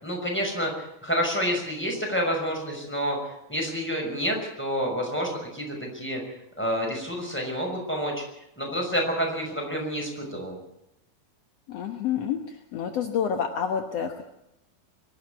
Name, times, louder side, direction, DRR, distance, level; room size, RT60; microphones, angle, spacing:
voice 1, 0.0-0.7 1.0-3.2 3.5-6.2 6.6-8.2 8.6-10.6, equal, 5° left, 1 dB, 5.7 m, -28 dB
voice 2, 11.7-12.4 12.7-14.2, left 8 dB, 65° left, 6 dB, 1.6 m, -28 dB
24.0 x 12.5 x 9.5 m, 0.82 s
omnidirectional pair, 4.6 m